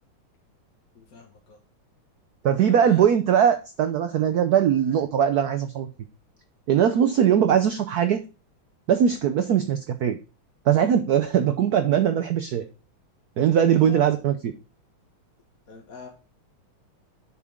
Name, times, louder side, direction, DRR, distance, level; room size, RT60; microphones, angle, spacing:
voice 1, 0.9-1.6 2.5-3.1 4.8-5.0 13.7-14.3 15.7-16.1, left 5 dB, 45° left, 0 dB, 1.6 m, -43 dB
voice 2, 2.4-5.9 6.7-8.2 8.9-10.2 10.7-12.7 13.4-14.5, right 9 dB, 80° right, 8 dB, 0.8 m, -21 dB
8.3 x 5.9 x 3.6 m, 0.33 s
omnidirectional pair, 2.4 m